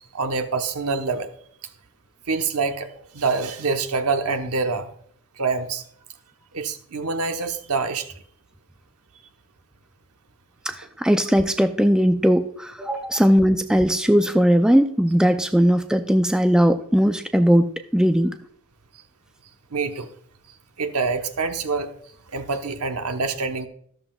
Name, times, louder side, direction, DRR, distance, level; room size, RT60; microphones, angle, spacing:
voice 1, 0.1-1.3 2.3-4.9 5.4-5.8 6.5-8.1 12.8-13.0 19.7-20.1 20.8-21.9 22.3-23.7, right 4 dB, 90° right, 6 dB, 1.1 m, -26 dB
voice 2, 10.7-18.3, equal, 5° right, 8 dB, 0.4 m, -19 dB
13.0 x 13.0 x 2.3 m, 0.64 s
head